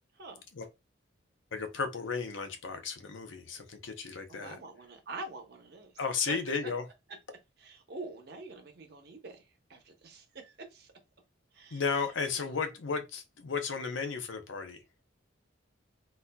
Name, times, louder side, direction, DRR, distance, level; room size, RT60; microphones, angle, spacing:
voice 1, 1.5-4.6 6.0-6.8 11.7-14.8, left 5 dB, 75° left, 0.6 m, -34 dB
voice 2, 4.3-5.9 6.3-6.4 7.6-9.4 9.7-10.9 11.5-11.8 12.4-12.5, right 3 dB, 55° right, 0.8 m, -45 dB
4.0 x 2.6 x 2.2 m
head